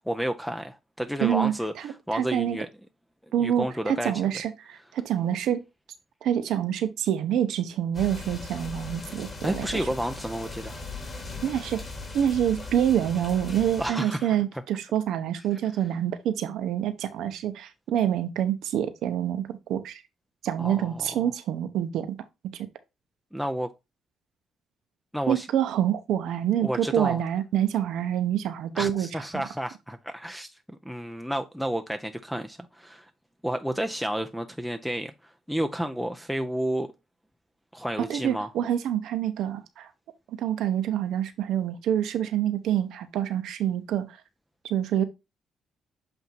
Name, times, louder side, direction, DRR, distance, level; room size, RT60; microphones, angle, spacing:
voice 1, 0.1-2.7 3.4-4.1 9.4-10.8 13.8-14.6 20.6-21.1 23.3-23.7 25.1-25.5 26.6-27.2 28.7-33.1 33.4-36.9 37.7-38.5, equal, ahead, 0.5 m, -31 dB
voice 2, 1.2-1.5 1.8-2.6 3.3-5.6 6.2-9.7 11.4-11.8 12.1-20.0 20.4-22.2 22.5-22.7 25.3-29.1 29.3-29.4 38.1-39.9 40.4-44.2 44.7-45.0, right 10 dB, 80° right, 0.9 m, -26 dB
sound 1, 7.9-13.9, left 3 dB, 35° left, 2.6 m, -38 dB
7.9 x 2.7 x 4.5 m
cardioid pair, 90°, 0 cm